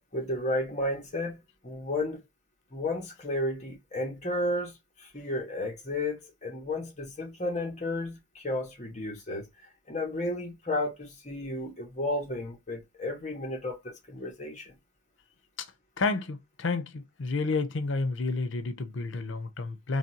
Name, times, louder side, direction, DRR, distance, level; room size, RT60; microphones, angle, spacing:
voice 1, 0.1-2.2 2.7-9.5 9.9-14.7, left 1 dB, 35° left, 1.5 m, -33 dB
voice 2, 16.0-20.0, left 3 dB, 80° left, 0.7 m, -30 dB
4.1 x 3.1 x 2.9 m
head